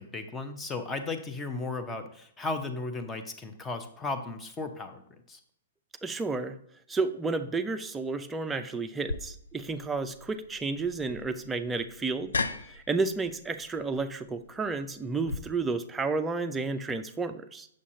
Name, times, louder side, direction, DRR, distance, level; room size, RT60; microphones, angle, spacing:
voice 1, 0.0-5.0 5.3-5.4, left 3 dB, 15° left, 7 dB, 0.8 m, -35 dB
voice 2, 6.0-6.6 6.9-12.3 12.7-17.7, right 3 dB, 10° right, 7 dB, 0.5 m, -31 dB
sound 1, 9.1-15.4, left 3 dB, 70° left, 0.5 m, -38 dB
8.4 x 6.4 x 2.8 m, 0.67 s
figure-of-eight pair, 110°, 0 cm